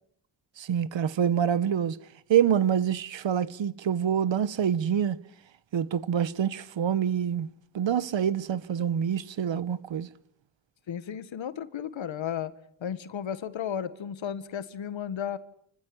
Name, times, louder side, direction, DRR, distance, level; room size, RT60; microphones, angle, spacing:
voice 1, 0.6-2.0 2.3-5.2 5.7-7.5 7.7-10.1, right 8 dB, 80° right, 1.3 m, -26 dB
voice 2, 10.9-12.5 12.8-15.4, left 8 dB, 85° left, 1.8 m, -34 dB
30.0 x 16.0 x 9.8 m
cardioid pair, 75°, 45 cm